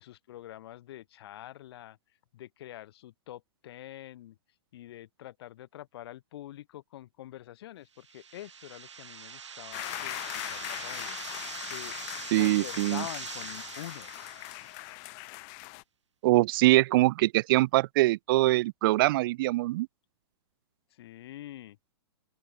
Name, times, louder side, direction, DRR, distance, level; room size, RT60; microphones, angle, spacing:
voice 1, 0.0-2.0 2.3-4.4 4.7-11.9 12.3-14.1 20.9-21.8, left 13 dB, 60° left, 4.8 m, -45 dB
sound 1, 8.0-14.9, right 7 dB, 90° right, 4.3 m, -43 dB
sound 2, 9.7-15.8, left 38 dB, 40° left, 2.5 m, -40 dB
voice 2, 12.3-13.0 16.2-19.9, right 18 dB, 50° right, 0.8 m, -23 dB
open air
hypercardioid pair, 130°, 15 cm